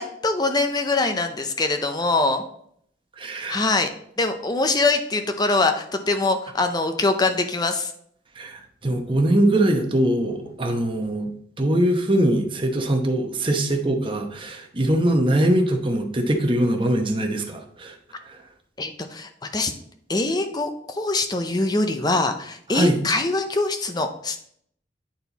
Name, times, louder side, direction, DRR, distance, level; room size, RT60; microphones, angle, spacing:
voice 1, 0.0-2.4 3.5-3.9 4.2-7.9 18.8-19.7 20.1-24.4, left 3 dB, 20° left, 7 dB, 0.6 m, -23 dB
voice 2, 3.2-3.6 8.4-11.3 11.6-17.9 18.3-18.4 22.7-23.0, right 1 dB, 30° right, 3 dB, 1.0 m, -22 dB
9.0 x 4.3 x 4.0 m, 0.66 s
head